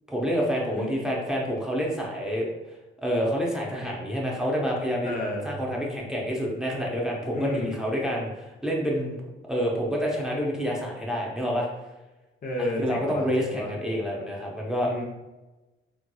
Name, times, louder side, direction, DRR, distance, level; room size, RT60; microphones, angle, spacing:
voice 1, 0.1-2.5 3.0-5.1 5.4-11.7 12.8-14.9, equal, 5° right, -3 dB, 0.8 m, -28 dB
voice 2, 5.0-5.5 7.3-7.8 12.4-13.7 14.8-15.0, left 2 dB, 45° left, -1 dB, 0.7 m, -31 dB
3.7 x 2.9 x 2.3 m, 1.1 s
cardioid pair, 90°, 20 cm